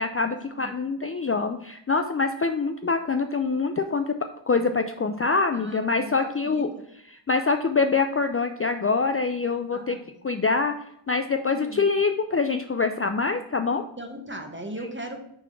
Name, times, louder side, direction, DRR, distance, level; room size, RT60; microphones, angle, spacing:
voice 1, 0.0-4.2 4.5-6.7 7.1-10.0 10.2-10.7 11.1-13.8 14.8-14.9, left 4 dB, 30° left, 7 dB, 0.4 m, -25 dB
voice 2, 5.5-6.8 9.7-10.1 11.5-11.9 14.0-15.2, right 1 dB, 25° right, 3 dB, 1.3 m, -38 dB
6.0 x 3.5 x 5.9 m, 0.75 s
wide cardioid pair, 55°, 47 cm